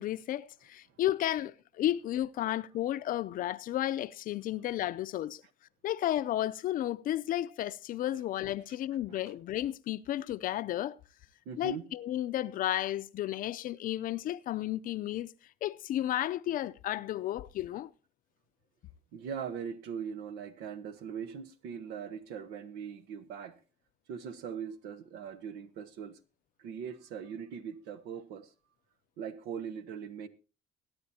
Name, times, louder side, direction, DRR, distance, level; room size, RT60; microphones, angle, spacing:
voice 1, 0.0-5.4 5.8-11.0 11.6-15.3 15.6-17.9, left 13 dB, 60° left, 0.5 m, -33 dB
voice 2, 11.4-11.9 19.1-23.5 24.1-26.2 26.6-28.5 29.2-30.3, right 7 dB, 90° right, 1.2 m, -40 dB
22.0 x 9.5 x 2.8 m
cardioid pair, 110°, 17 cm